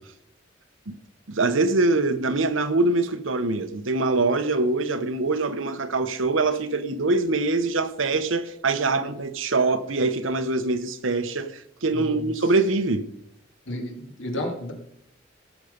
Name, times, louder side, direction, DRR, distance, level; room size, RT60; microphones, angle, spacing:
voice 1, 1.3-13.1, right 3 dB, 80° right, 1.0 m, -24 dB
voice 2, 11.9-12.4 13.7-14.7, left 1 dB, 75° left, 2.8 m, -32 dB
17.0 x 6.6 x 5.2 m
head